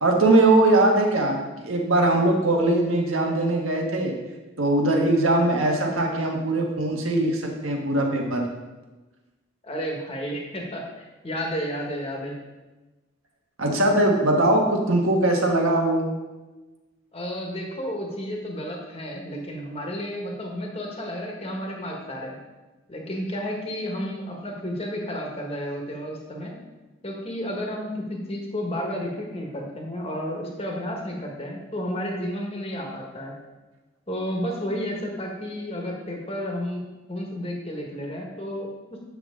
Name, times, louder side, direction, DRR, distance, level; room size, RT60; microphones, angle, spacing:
voice 1, 0.0-1.4 1.6-4.1 4.6-8.5 13.6-16.1, right 2 dB, 90° right, 1 dB, 1.5 m, -21 dB
voice 2, 9.6-12.3 17.1-22.4 22.9-26.5 27.0-33.3 34.1-39.0, equal, 30° left, 0 dB, 1.4 m, -32 dB
8.8 x 6.2 x 3.8 m, 1.1 s
head